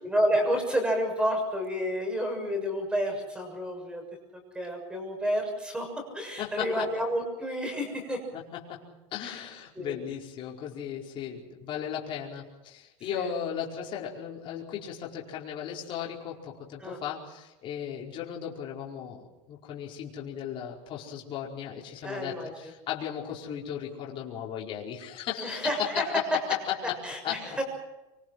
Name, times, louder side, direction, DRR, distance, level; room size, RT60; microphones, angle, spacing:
voice 1, 0.0-4.0 4.3-8.2 9.2-9.4 9.7-9.9 13.1-13.3 16.8-17.0 22.0-22.7 25.4-26.4 27.0-27.6, equal, 5° right, 4 dB, 6.7 m, -30 dB
voice 2, 6.4-6.9 8.3-26.1 26.5-27.0 27.2-27.6, left 9 dB, 35° left, -3 dB, 4.9 m, -36 dB
26.0 x 24.0 x 6.3 m, 1.0 s
supercardioid pair, 170°, 16 cm